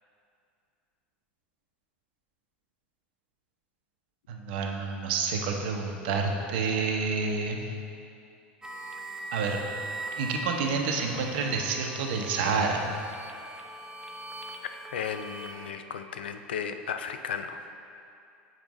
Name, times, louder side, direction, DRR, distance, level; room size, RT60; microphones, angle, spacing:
voice 1, 4.3-7.6 9.3-9.6 10.2-12.8, right 4 dB, 70° right, 2 dB, 0.7 m, -28 dB
sound 1, 8.6-15.7, right 2 dB, 10° right, 0.6 m, -41 dB
voice 2, 14.9-17.6, left 7 dB, 80° left, 8 dB, 0.3 m, -35 dB
7.3 x 5.2 x 3.0 m, 2.5 s
hypercardioid pair, 80°, 6 cm